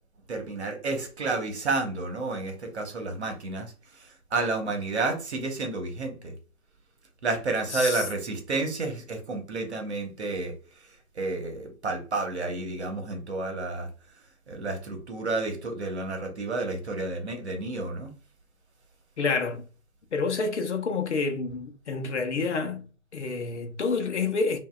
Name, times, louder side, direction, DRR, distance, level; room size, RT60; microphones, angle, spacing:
voice 1, 0.3-3.7 4.3-6.3 7.2-10.5 11.2-13.9 14.5-18.1, right 3 dB, 50° right, 1.2 m, -30 dB
voice 2, 7.7-8.0 19.2-19.6 20.1-22.8 23.1-24.6, left 4 dB, 55° left, 0.9 m, -28 dB
5.3 x 2.7 x 2.4 m
hypercardioid pair, 165°, 42 cm